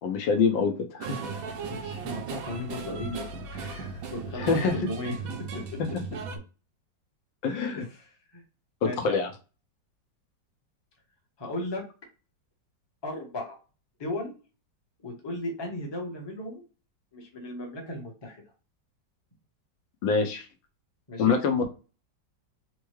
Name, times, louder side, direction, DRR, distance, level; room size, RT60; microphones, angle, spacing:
voice 1, 0.0-1.2 4.3-4.7 7.4-7.9 8.8-9.3 20.0-20.4 21.2-21.7, left 5 dB, 90° left, 5 dB, 1.4 m, -25 dB
sound 1, 1.0-6.4, right 5 dB, 70° right, 0.8 m, -36 dB
voice 2, 1.7-3.2 3.5-5.2 5.5-5.8 8.0-8.4 8.8-9.2 11.4-11.8 13.0-13.6 14.0-14.3 15.0-16.6 17.1-18.4 21.1-21.4, left 1 dB, 20° left, 0 dB, 0.6 m, -36 dB
4.4 x 2.2 x 3.1 m, 0.33 s
omnidirectional pair, 2.0 m